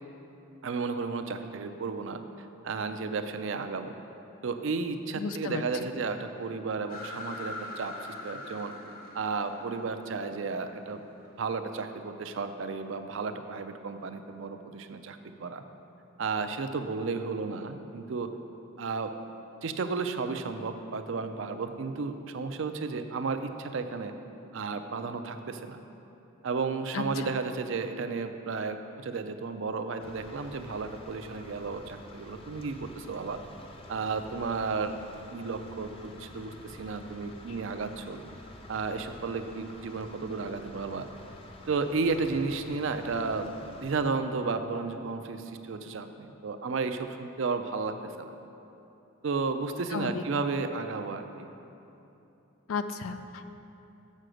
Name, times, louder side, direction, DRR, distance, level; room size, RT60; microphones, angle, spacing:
voice 1, 0.6-3.9 4.4-7.9 8.2-8.7 9.1-11.1 11.4-15.6 16.2-18.3 18.8-19.1 19.6-24.1 24.5-25.8 26.4-33.4 33.9-35.0 35.3-38.2 38.7-41.1 41.7-43.6 43.8-48.3 49.2-51.5, right 4 dB, 60° right, 8 dB, 0.4 m, -33 dB
voice 2, 5.2-5.6 26.9-27.3 49.9-50.2 52.7-53.5, left 5 dB, 80° left, 9 dB, 0.4 m, -34 dB
sound 1, 6.9-11.4, left 2 dB, 45° left, 1.2 m, -43 dB
sound 2, 30.0-44.0, left 1 dB, 25° left, 0.5 m, -49 dB
6.7 x 6.4 x 6.3 m, 2.9 s
head